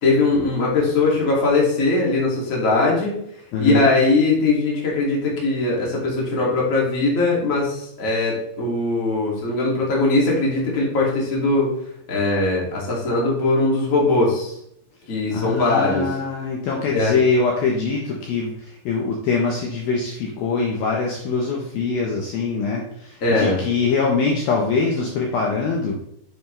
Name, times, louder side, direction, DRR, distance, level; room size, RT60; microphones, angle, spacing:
voice 1, 0.0-3.1 3.6-11.7 12.1-14.6 15.1-16.0 16.9-17.2 23.2-23.6, left 2 dB, 30° left, -4 dB, 1.7 m, -20 dB
voice 2, 3.5-3.9 15.3-26.0, left 4 dB, 70° left, -1 dB, 2.4 m, -23 dB
8.4 x 6.9 x 3.2 m, 0.73 s
omnidirectional pair, 5.2 m